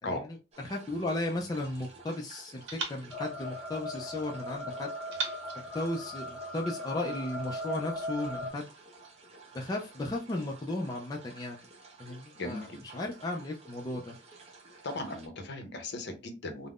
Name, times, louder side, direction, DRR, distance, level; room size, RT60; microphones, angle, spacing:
sound 1, 0.5-15.3, right 3 dB, 35° right, 0.7 m, -53 dB
voice 1, 0.7-4.9 5.7-8.7 9.5-11.6 12.0-12.6 12.9-14.2, left 2 dB, 20° left, 0.3 m, -35 dB
sound 2, 0.9-2.1 2.7-4.3 5.1-6.7, right 5 dB, 80° right, 0.8 m, -42 dB
sound 3, 3.1-8.5, left 1 dB, ahead, 0.7 m, -39 dB
voice 2, 12.3-12.8 14.8-16.7, left 2 dB, 65° left, 0.6 m, -37 dB
3.5 x 2.0 x 2.3 m
head